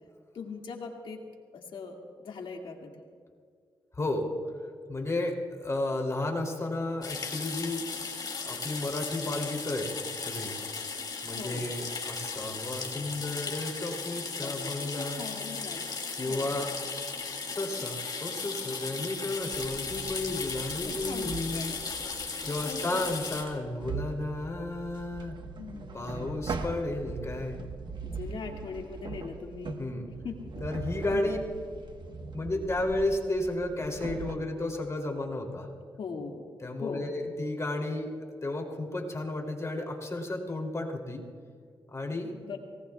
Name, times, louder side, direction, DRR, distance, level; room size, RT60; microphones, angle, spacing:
voice 1, 0.3-1.2 1.5-2.9 11.4-11.6 14.4-16.0 16.2-16.6 20.8-21.9 22.6-23.0 25.6-26.3 28.0-29.8 30.2-30.6 31.1-31.3 36.0-36.4 36.8-37.1 42.4-42.6, left 5 dB, 75° left, 1 dB, 2.2 m, -40 dB
voice 2, 3.9-4.3 4.9-7.8 8.5-9.9 10.2-10.6 11.2-15.2 16.2-16.7 17.5-21.8 22.4-25.3 25.9-27.6 29.8-30.1 30.6-31.4 32.3-35.7 36.6-38.1 38.4-41.2 41.9-42.3, left 2 dB, 35° left, 1 dB, 3.0 m, -33 dB
sound 1, 7.0-23.4, left 4 dB, 50° left, 2.7 m, -36 dB
sound 2, 19.5-34.4, right 4 dB, 60° right, 1.2 m, -41 dB
25.5 x 19.0 x 2.3 m, 2.1 s
cardioid pair, 60°, 9 cm